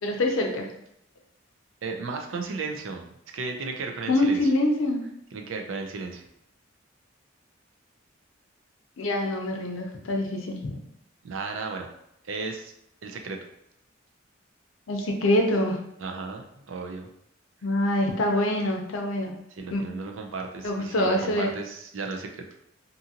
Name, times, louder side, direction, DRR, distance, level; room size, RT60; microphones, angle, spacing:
voice 1, 0.0-0.7 4.1-5.0 9.0-10.8 14.9-15.8 17.6-19.3 19.7-19.8 20.6-21.5, left 1 dB, 90° left, 2 dB, 0.6 m, -25 dB
voice 2, 1.8-4.5 5.3-6.2 11.2-11.9 12.2-12.7 13.0-13.4 16.0-17.1 19.6-22.4, right 4 dB, 75° right, 3 dB, 0.5 m, -34 dB
2.6 x 2.5 x 2.7 m, 0.78 s
head